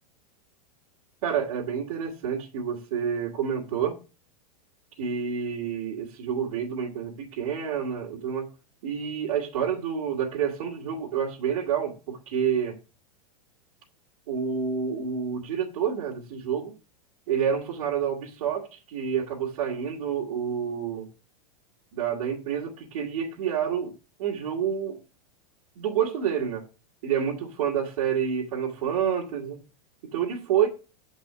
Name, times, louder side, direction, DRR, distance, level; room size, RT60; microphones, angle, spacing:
voice 1, 1.2-4.0 5.0-8.5 8.8-12.8 14.3-16.7 17.3-21.1 21.9-23.9 24.2-25.0 25.8-26.6 27.0-29.6 30.1-30.7, right 8 dB, 65° right, 2.4 m, -28 dB
7.2 x 5.4 x 6.6 m
supercardioid pair, 155°, 20 cm